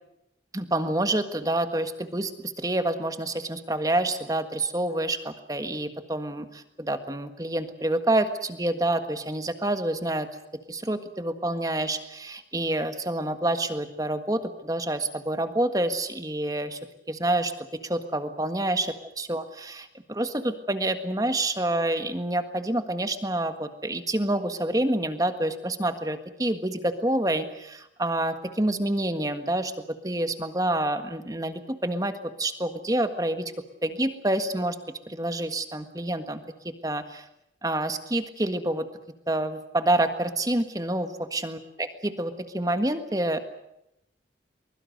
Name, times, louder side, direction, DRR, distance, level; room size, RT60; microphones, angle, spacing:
voice 1, 0.5-10.3 10.7-16.8 17.1-29.7 30.0-33.5 33.8-34.8 35.1-37.2 37.6-38.9 39.3-43.4, right 1 dB, 20° right, 9 dB, 1.6 m, -28 dB
23.5 x 22.0 x 7.9 m, 0.81 s
head